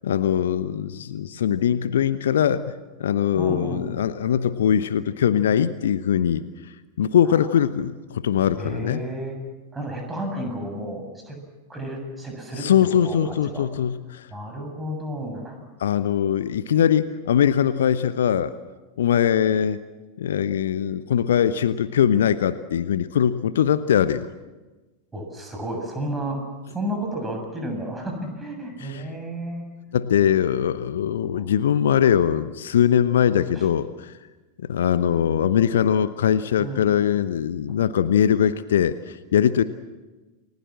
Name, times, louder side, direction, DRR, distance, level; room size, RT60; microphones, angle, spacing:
voice 1, 0.0-2.7 3.0-6.4 7.0-9.0 12.6-14.3 15.8-18.5 19.0-19.8 20.2-24.3 28.8-29.1 29.9-34.1 34.7-39.6, left 9 dB, 60° left, 14 dB, 0.9 m, -21 dB
voice 2, 3.4-3.8 7.2-7.4 8.6-9.4 9.7-13.7 14.3-15.6 25.1-29.7 31.2-31.4 33.6-33.7 36.6-36.8, right 1 dB, 10° right, 3 dB, 7.2 m, -32 dB
29.0 x 20.5 x 7.6 m, 1.2 s
figure-of-eight pair, 90°, 0 cm